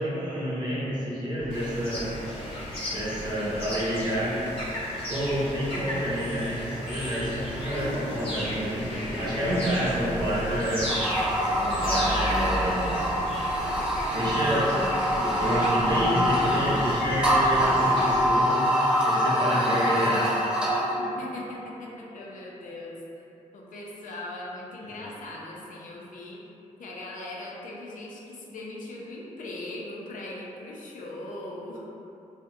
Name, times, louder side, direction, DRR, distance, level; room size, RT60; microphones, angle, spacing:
voice 1, 0.0-2.2 2.9-4.5 5.1-11.0 11.6-13.0 14.1-18.7 19.0-20.5 24.8-25.0, equal, 30° right, -8 dB, 0.7 m, -29 dB
sound 1, 1.4-18.4, equal, 75° right, 0.6 m, -39 dB
sound 2, 1.5-18.1, left 1 dB, 40° left, 0.8 m, -35 dB
voice 2, 9.5-9.9 21.0-23.0 23.5-26.4 26.8-31.8, left 2 dB, 70° left, -3 dB, 0.4 m, -39 dB
sound 3, 10.9-21.0, equal, 5° right, 0.4 m, -25 dB
2.6 x 2.1 x 2.4 m, 2.8 s
cardioid pair, 90°, 14 cm